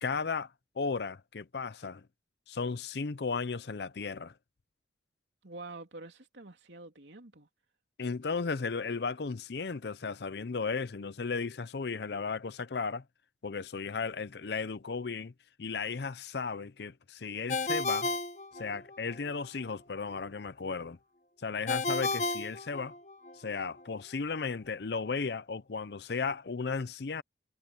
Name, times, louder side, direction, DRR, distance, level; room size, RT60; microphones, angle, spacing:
voice 1, 0.0-2.1 2.5-4.3 8.0-13.0 13.4-15.3 15.6-18.1 18.5-21.0 21.4-22.9 23.4-27.2, left 4 dB, 65° left, 0.6 m, -35 dB
voice 2, 5.4-7.5, right 3 dB, 75° right, 3.1 m, -47 dB
Ringtone, 17.5-19.2 21.7-23.3, left 3 dB, 40° left, 1.0 m, -32 dB
head